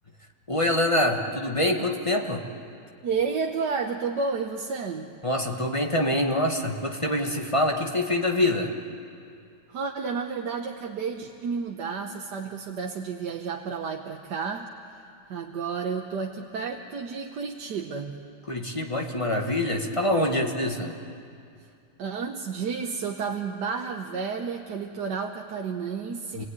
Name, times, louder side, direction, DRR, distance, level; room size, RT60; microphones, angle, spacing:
voice 1, 0.5-2.4 5.2-8.7 18.5-21.0 26.3-26.4, left 1 dB, 20° left, 2 dB, 1.4 m, -25 dB
voice 2, 3.0-5.1 9.7-18.2 22.0-26.4, right 5 dB, 70° right, 2 dB, 1.6 m, -31 dB
27.0 x 18.5 x 9.7 m, 2.5 s
omnidirectional pair, 2.0 m